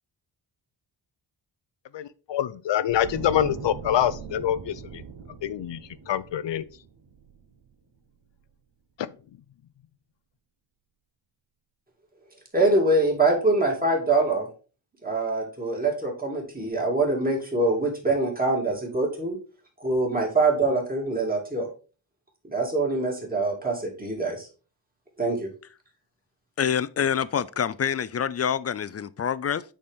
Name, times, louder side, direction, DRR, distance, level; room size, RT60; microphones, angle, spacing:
voice 1, 1.9-5.0 5.4-5.8 6.1-6.7 9.0-9.1, left 10 dB, 70° left, 0.7 m, -26 dB
Horror Evil Round the Corner, 2.9-8.0 8.3-8.5, right 5 dB, 60° right, 1.1 m, -41 dB
voice 2, 12.5-14.5 15.0-19.4 19.8-21.7 22.4-24.5 25.2-25.5, right 2 dB, 20° right, 2.4 m, -24 dB
voice 3, 26.6-29.6, left 8 dB, 35° left, 0.4 m, -26 dB
8.5 x 4.3 x 3.5 m
wide cardioid pair, 105°, 45 cm